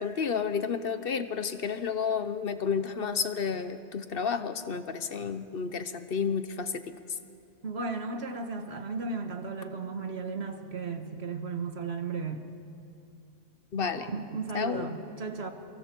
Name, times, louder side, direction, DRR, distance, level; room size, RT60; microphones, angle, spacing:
voice 1, 0.0-6.9 13.7-14.1 14.5-14.9, left 6 dB, 60° left, 11 dB, 1.0 m, -31 dB
voice 2, 7.6-12.5 13.9-15.5, right 4 dB, 70° right, 6 dB, 1.6 m, -35 dB
27.5 x 24.0 x 4.5 m, 2.6 s
omnidirectional pair, 1.1 m